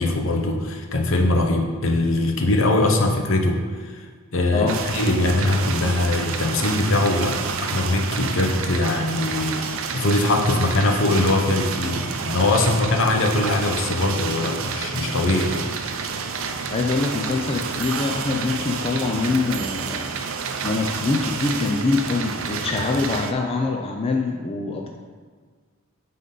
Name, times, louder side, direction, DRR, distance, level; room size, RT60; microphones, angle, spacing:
voice 1, 0.0-4.0 4.3-15.6, left 2 dB, 65° left, 3 dB, 0.8 m, -22 dB
sound 1, 4.7-23.3, right 5 dB, 70° right, 0.5 m, -29 dB
voice 2, 16.7-20.1 20.6-24.9, left 3 dB, 25° left, 1 dB, 0.4 m, -24 dB
9.1 x 3.8 x 3.9 m, 1.5 s
head